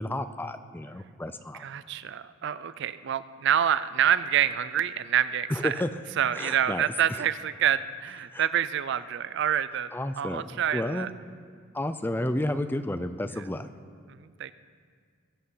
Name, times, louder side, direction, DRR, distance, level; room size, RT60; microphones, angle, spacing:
voice 1, 0.0-1.6 5.5-5.9 6.3-6.9 8.3-8.4 9.9-10.4 10.7-11.1 11.7-13.7, left 1 dB, 10° left, 10 dB, 0.4 m, -31 dB
voice 2, 1.6-5.8 6.2-9.9 10.2-11.1 13.4-13.5 14.1-14.5, right 9 dB, 55° right, 15 dB, 0.4 m, -27 dB
21.0 x 8.0 x 5.6 m, 2.1 s
head